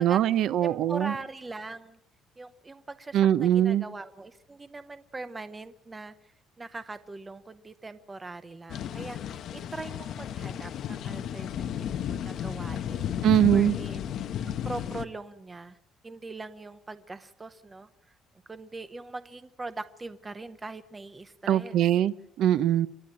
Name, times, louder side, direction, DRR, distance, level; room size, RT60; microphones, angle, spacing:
voice 1, 0.0-1.1 3.1-3.8 13.2-13.7 21.5-22.9, right 11 dB, 55° right, 15 dB, 0.7 m, -22 dB
voice 2, 0.6-2.0 2.4-6.3 6.6-13.1 13.5-14.2 14.7-15.8 16.0-17.9 18.5-21.8, right 3 dB, 15° right, 11 dB, 0.7 m, -41 dB
sound 1, 8.7-15.0, left 10 dB, 50° left, 0.9 m, -33 dB
28.5 x 12.0 x 8.8 m, 0.84 s
cardioid pair, 175°, 0 cm